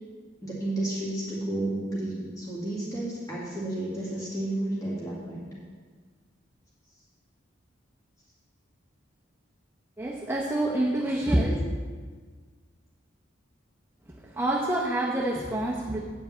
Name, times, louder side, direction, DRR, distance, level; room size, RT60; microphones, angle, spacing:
voice 1, 0.4-5.5, right 1 dB, 15° left, -7 dB, 2.1 m, -32 dB
voice 2, 10.0-11.6 14.1-16.0, right 1 dB, 10° right, -4 dB, 0.8 m, -27 dB
9.0 x 5.2 x 7.4 m, 1.5 s
head